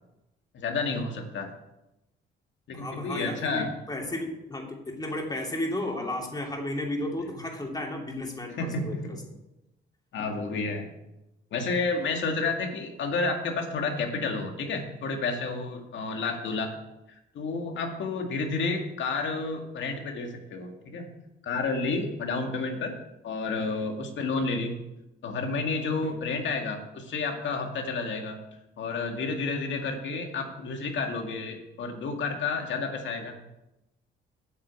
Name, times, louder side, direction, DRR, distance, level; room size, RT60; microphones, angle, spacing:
voice 1, 0.5-1.5 2.7-3.7 8.6-9.2 10.1-10.9 11.5-16.8 17.1-21.1 21.4-22.9 23.2-24.8 25.2-28.4 28.8-33.3, left 3 dB, 70° left, 3 dB, 2.1 m, -30 dB
voice 2, 2.7-9.2 26.0-26.1, left 1 dB, 20° left, 1 dB, 2.8 m, -33 dB
9.2 x 6.6 x 8.3 m, 0.93 s
cardioid pair, 90°, 20 cm